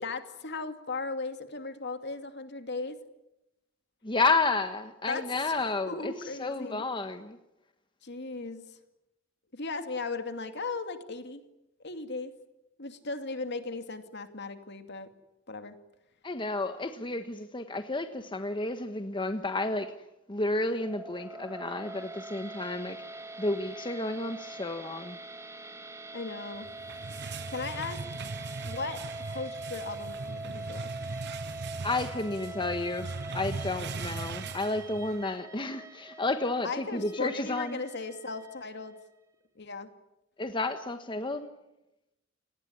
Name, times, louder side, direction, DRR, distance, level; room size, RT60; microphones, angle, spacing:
voice 1, 0.0-3.0 5.1-6.8 8.0-8.8 9.5-11.4 11.8-12.3 12.8-15.1 15.5-15.8 26.1-26.7 27.5-28.3 28.6-31.0 36.6-39.0 39.6-39.9, left 3 dB, 60° left, 2.5 m, -37 dB
voice 2, 4.0-6.1 6.4-7.4 16.2-19.9 20.3-23.0 23.4-25.2 31.8-37.8 40.4-41.5, left 2 dB, 25° left, 1.3 m, -31 dB
sound 1, 20.7-39.0, right 2 dB, 15° right, 2.2 m, -43 dB
sound 2, 26.6-35.3, right 4 dB, 60° right, 0.9 m, -39 dB
29.5 x 19.5 x 9.8 m
head